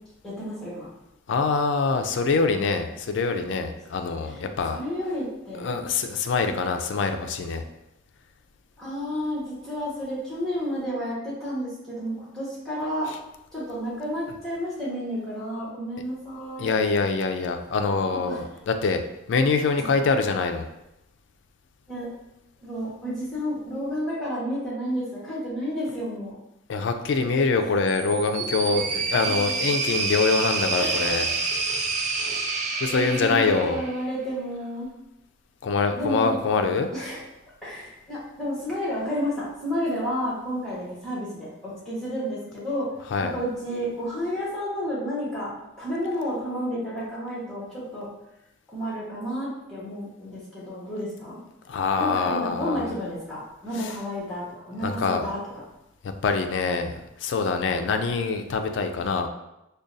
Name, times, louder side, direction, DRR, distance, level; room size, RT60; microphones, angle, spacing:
voice 1, 0.2-0.9 4.2-5.8 8.8-13.1 13.5-16.7 18.3-18.4 19.8-19.9 21.9-22.1 22.6-26.3 28.6-28.7 29.2-29.5 30.8-31.2 32.2-32.4 32.9-34.9 36.0-36.3 36.9-37.2 37.6-42.9 43.2-45.5 45.8-48.1 48.7-51.4 52.0-55.4, equal, 5° left, -8 dB, 1.3 m, -31 dB
voice 2, 1.3-4.8 5.6-7.6 13.1-13.2 16.6-19.0 19.3-20.7 26.7-31.3 32.8-33.8 35.6-36.9 43.1-43.4 51.7-52.9 53.8-53.9 54.8-55.3 56.0-56.9 57.2-59.3, left 4 dB, 65° left, 6 dB, 0.3 m, -24 dB
sound 1, 27.9-34.1, right 4 dB, 40° right, 0.4 m, -28 dB
4.9 x 2.2 x 2.6 m, 0.90 s
head